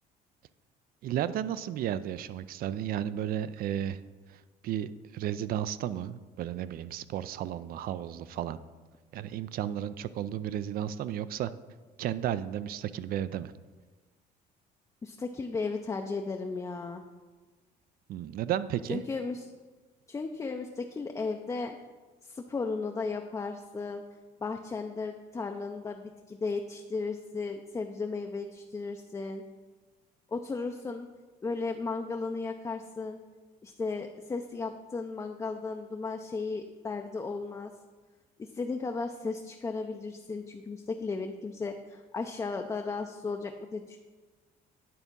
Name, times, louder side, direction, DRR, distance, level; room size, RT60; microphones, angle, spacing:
voice 1, 1.0-4.0 4.6-8.6 9.1-11.5 12.0-13.5 18.1-19.0, right 10 dB, 60° right, 15 dB, 0.4 m, -33 dB
voice 2, 15.0-17.0 18.9-19.5 20.1-21.8 22.2-24.0 24.4-29.4 30.3-31.1 31.4-33.2 33.6-37.7 38.4-44.0, left 4 dB, 20° left, 4 dB, 0.4 m, -35 dB
9.4 x 3.5 x 5.3 m, 1.3 s
cardioid pair, 110°, 17 cm